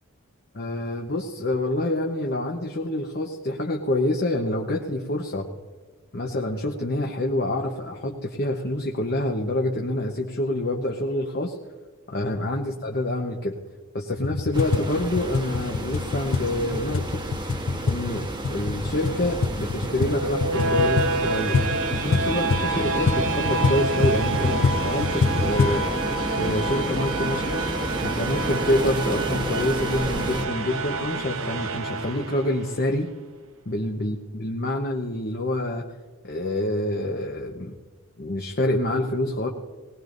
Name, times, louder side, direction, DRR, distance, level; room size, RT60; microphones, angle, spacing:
voice 1, 0.5-5.5 6.1-11.6 12.1-13.6 13.9-17.2 17.8-21.6 22.0-25.9 26.4-27.6 28.0-33.1 33.7-35.9 36.2-37.7 38.2-39.5, left 1 dB, 45° left, 1 dB, 1.0 m, -27 dB
sound 1, 14.2-25.8, left 4 dB, 65° left, 0.5 m, -26 dB
sound 2, 14.5-30.4, right 1 dB, 20° right, 1.2 m, -31 dB
sound 3, 19.8-32.8, right 3 dB, 70° right, 0.9 m, -28 dB
19.5 x 19.5 x 2.6 m, 1.4 s
head